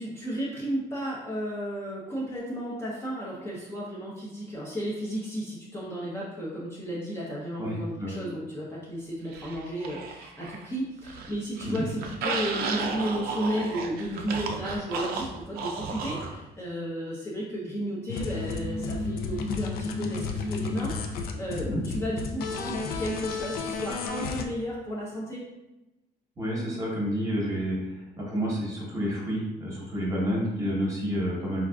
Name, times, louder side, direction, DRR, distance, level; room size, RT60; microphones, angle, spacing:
voice 1, 0.0-25.4, equal, 15° left, -6 dB, 0.6 m, -33 dB
voice 2, 7.6-8.2 11.6-11.8 21.6-21.8 26.4-27.8 28.2-31.6, equal, 20° right, -4 dB, 1.0 m, -29 dB
sound 1, 9.3-10.7 11.0-16.3, right 4 dB, 65° right, 0.4 m, -34 dB
sound 2, 18.1-24.4, left 4 dB, 65° left, 0.4 m, -32 dB
3.7 x 2.4 x 2.3 m, 0.98 s
cardioid pair, 110°, 17 cm